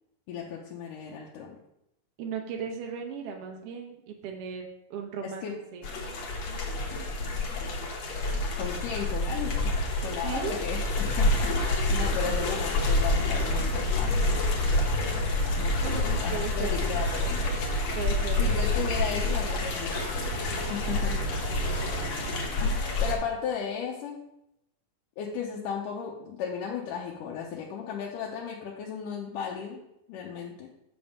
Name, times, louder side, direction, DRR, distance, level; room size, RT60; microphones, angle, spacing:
voice 1, 0.3-1.6 5.2-5.5 8.6-10.8 11.2-14.3 15.6-17.5 18.4-20.0 20.7-21.6 23.0-24.2 25.2-29.8 30.1-30.7, left 7 dB, 80° left, -2 dB, 2.3 m, -35 dB
voice 2, 2.2-5.9 10.2-10.6 15.6-16.8 17.9-18.7 20.5-20.6 21.5-22.1, right 7 dB, 75° right, 2 dB, 1.3 m, -37 dB
sound 1, 5.8-23.1, left 2 dB, 60° left, 2.3 m, -28 dB
sound 2, 12.9-22.4, right 2 dB, 45° right, 1.4 m, -36 dB
7.9 x 3.5 x 6.6 m, 0.83 s
omnidirectional pair, 3.8 m